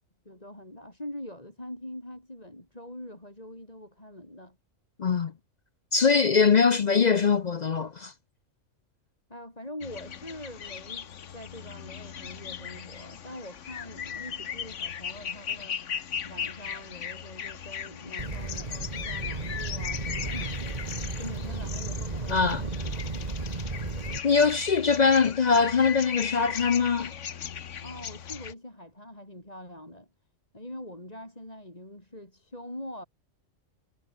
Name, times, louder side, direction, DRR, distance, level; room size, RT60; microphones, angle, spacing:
voice 1, 0.3-4.6 9.3-15.8 16.2-20.6 20.9-23.1 27.8-30.1 30.5-33.1, left 1 dB, 30° left, 5.8 m, -43 dB
voice 2, 5.0-5.3 5.9-8.1 22.3-22.6 24.2-27.1, left 5 dB, 45° left, 0.5 m, -22 dB
sound 1, 9.8-28.5, left 8 dB, 65° left, 1.4 m, -38 dB
sound 2, 18.2-24.2, right 3 dB, 30° right, 1.9 m, -34 dB
omnidirectional pair, 1.4 m